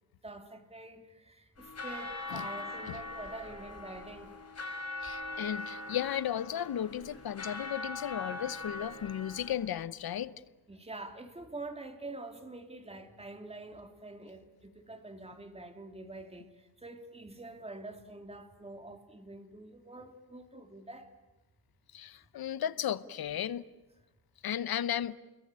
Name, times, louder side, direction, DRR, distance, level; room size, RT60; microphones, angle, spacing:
voice 1, 0.2-4.3 10.7-16.5 16.8-21.1, right 2 dB, 15° right, 2.5 m, -46 dB
sound 1, 1.6-9.5, left 2 dB, 45° left, 5.5 m, -41 dB
voice 2, 5.0-10.3 21.9-23.6 24.4-25.2, left 10 dB, 80° left, 0.9 m, -35 dB
29.5 x 22.0 x 8.9 m
wide cardioid pair, 145°, 36 cm